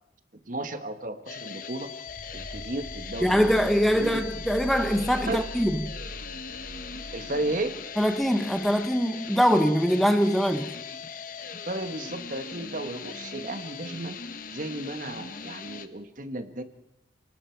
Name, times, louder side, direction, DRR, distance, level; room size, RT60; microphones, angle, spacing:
voice 1, 0.5-1.9 2.3-4.2 5.3-5.4 7.1-7.7 11.7-14.2 14.5-16.6, right 2 dB, 50° right, 1.4 m, -34 dB
sound 1, 1.3-15.9, left 6 dB, 50° left, 1.1 m, -40 dB
sound 2, 2.1-8.6, right 1 dB, 70° left, 6.6 m, -41 dB
voice 2, 3.2-5.9 8.0-10.7, equal, ahead, 1.0 m, -23 dB
29.5 x 19.0 x 4.6 m
head